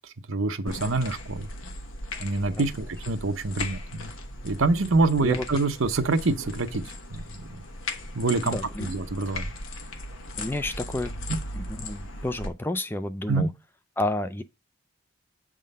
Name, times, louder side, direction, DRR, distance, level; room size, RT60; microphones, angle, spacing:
voice 1, 0.3-1.5 2.2-4.1 4.4-6.8 7.1-7.6 8.1-9.5 13.3-13.5, right 3 dB, 80° right, 0.8 m, -26 dB
Vitamins in Bottle, 0.7-12.5, left 2 dB, 85° left, 1.3 m, -37 dB
voice 2, 8.5-8.9 10.4-11.1 11.5-13.5 14.0-14.4, left 1 dB, 10° left, 0.4 m, -30 dB
7.3 x 3.7 x 5.4 m
head